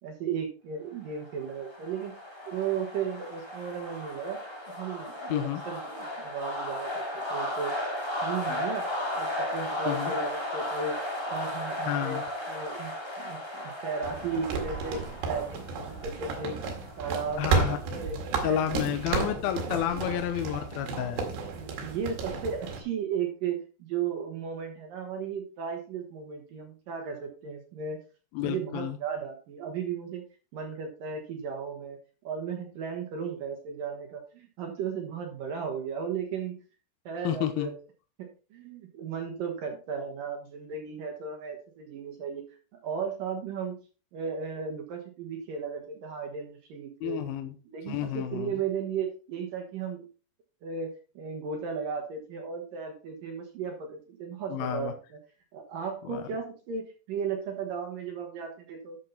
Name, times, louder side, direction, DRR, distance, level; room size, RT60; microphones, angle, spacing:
voice 1, 0.0-2.1 2.4-4.4 4.8-7.9 8.2-8.9 9.1-10.9 11.2-12.2 12.5-15.0 15.3-16.6 17.0-17.8 18.0-18.2 18.4-19.4 19.8-20.1 21.3-28.0 28.4-30.2 30.5-32.0 32.2-36.6 37.1-37.8 38.2-43.8 44.1-47.2 47.7-50.0 50.6-55.2 55.5-59.0, right 6 dB, 65° right, 3 dB, 2.8 m, -35 dB
sound 1, 1.2-17.9, left 1 dB, 10° left, 1.4 m, -35 dB
voice 2, 5.3-5.6 8.5-8.7 9.9-10.1 11.8-12.2 17.4-18.0 18.4-21.2 28.3-29.0 37.2-37.7 47.0-47.5 47.9-48.5 54.5-54.9 56.0-56.2, left 11 dB, 75° left, 8 dB, 2.4 m, -30 dB
sound 2, 14.0-22.8, right 5 dB, 85° right, 4.2 m, -33 dB
12.0 x 7.4 x 4.0 m, 0.35 s
omnidirectional pair, 4.8 m